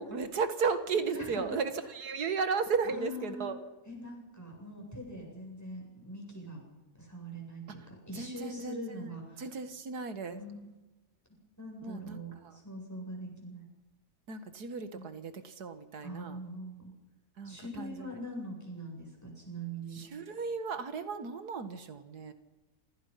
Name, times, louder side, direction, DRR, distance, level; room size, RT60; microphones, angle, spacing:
voice 1, 0.0-3.6 7.7-10.4 11.8-12.6 14.3-16.4 17.4-18.2 19.9-22.3, right 5 dB, 85° right, 9 dB, 2.2 m, -35 dB
voice 2, 1.1-1.4 2.9-3.5 3.9-6.6 7.0-9.4 10.3-10.7 11.6-13.6 14.9-15.0 16.0-16.9 17.4-20.0, equal, 10° left, 0 dB, 8.0 m, -43 dB
28.0 x 26.0 x 5.8 m, 1.1 s
omnidirectional pair, 1.6 m